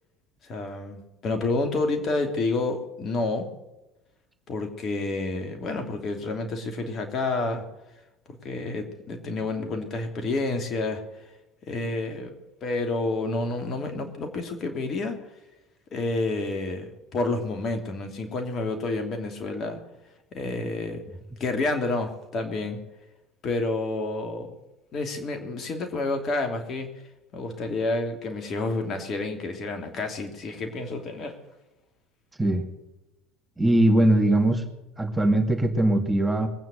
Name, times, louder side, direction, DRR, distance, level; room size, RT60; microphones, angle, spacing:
voice 1, 0.4-3.5 4.5-7.6 8.4-11.0 11.7-12.3 12.6-15.2 15.9-19.8 20.3-21.0 21.4-22.8 23.4-24.5 24.9-26.9 27.3-31.3, left 3 dB, 45° left, 5 dB, 3.0 m, -29 dB
voice 2, 33.6-34.6 35.0-36.5, right 1 dB, 10° right, 4 dB, 2.2 m, -21 dB
21.5 x 9.2 x 6.5 m, 0.99 s
hypercardioid pair, 65°, 0 cm